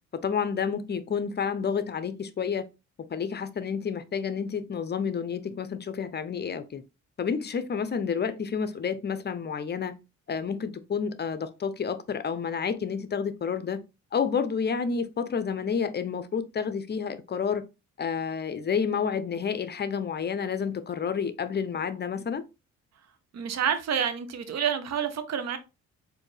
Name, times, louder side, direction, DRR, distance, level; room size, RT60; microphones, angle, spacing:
voice 1, 0.2-2.7 3.1-6.8 7.2-9.9 10.3-13.8 14.1-17.6 18.0-22.4, left 6 dB, 35° left, 0.6 m, -30 dB
voice 2, 23.3-25.6, right 8 dB, 60° right, 0.8 m, -28 dB
4.2 x 2.7 x 3.2 m
cardioid pair, 90°, 30 cm